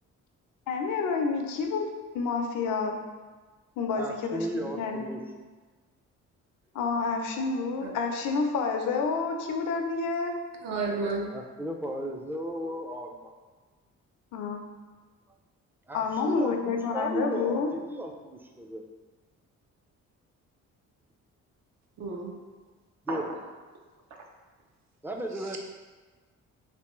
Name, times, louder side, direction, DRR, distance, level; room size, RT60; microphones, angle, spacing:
voice 1, 0.7-3.0 3.8-5.1 6.7-10.3 14.3-14.6 15.9-17.7, left 4 dB, 80° left, 3 dB, 0.5 m, -29 dB
voice 2, 3.9-5.2 11.3-13.3 15.9-18.8 23.1-23.2 25.0-25.6, equal, 5° right, 1 dB, 0.4 m, -34 dB
voice 3, 10.6-11.3 22.0-22.3 23.1-23.3 25.4-25.6, right 3 dB, 60° right, 1 dB, 0.7 m, -31 dB
3.4 x 2.9 x 3.0 m, 1.4 s
cardioid pair, 90°, 30 cm